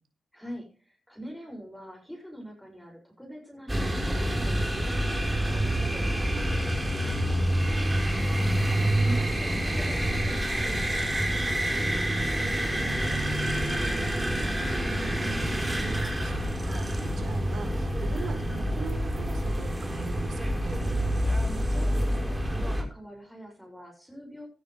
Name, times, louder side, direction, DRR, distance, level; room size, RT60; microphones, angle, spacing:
voice 1, 0.3-7.2 9.0-13.9 21.4-24.5, equal, 5° left, 1 dB, 6.7 m, -44 dB
sound 1, 3.7-22.8, right 1 dB, 15° right, 4.6 m, -27 dB
voice 2, 7.9-8.7 14.8-20.8, right 4 dB, 90° right, 6 dB, 4.3 m, -42 dB
16.5 x 11.5 x 3.4 m, 0.38 s
wide cardioid pair, 100°, 0 cm